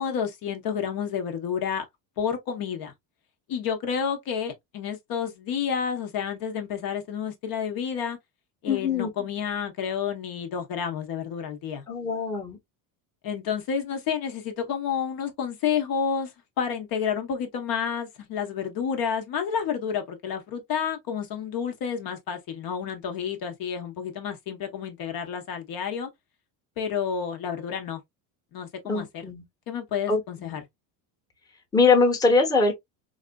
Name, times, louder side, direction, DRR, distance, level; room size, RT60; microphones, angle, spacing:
voice 1, 0.0-1.8 2.2-2.9 3.5-8.2 8.6-11.8 13.2-16.3 16.6-26.1 26.8-28.0 28.5-29.2 29.7-30.6, left 7 dB, 50° left, 0.9 m, -30 dB
voice 2, 8.7-9.1 11.9-12.6 28.9-29.4 30.1-30.6 31.7-32.7, left 4 dB, 10° left, 0.9 m, -22 dB
4.1 x 2.5 x 2.2 m
cardioid pair, 125°, 44 cm